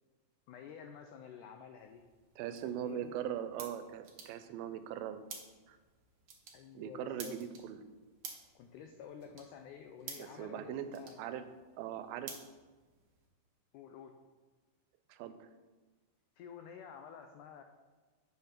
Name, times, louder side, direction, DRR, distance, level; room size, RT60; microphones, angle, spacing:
voice 1, 0.5-2.0 2.6-3.1 6.5-7.4 8.6-11.2 13.7-14.2 16.4-17.6, left 7 dB, 90° left, 5 dB, 1.7 m, -51 dB
sound 1, 1.8-13.3, right 5 dB, 70° right, 1.4 m, -53 dB
voice 2, 2.4-5.2 5.7-5.8 6.8-7.8 10.2-11.5 11.8-12.4 15.1-15.5, right 10 dB, 90° right, 10 dB, 2.5 m, -40 dB
7.6 x 5.7 x 5.9 m, 1.3 s
omnidirectional pair, 4.2 m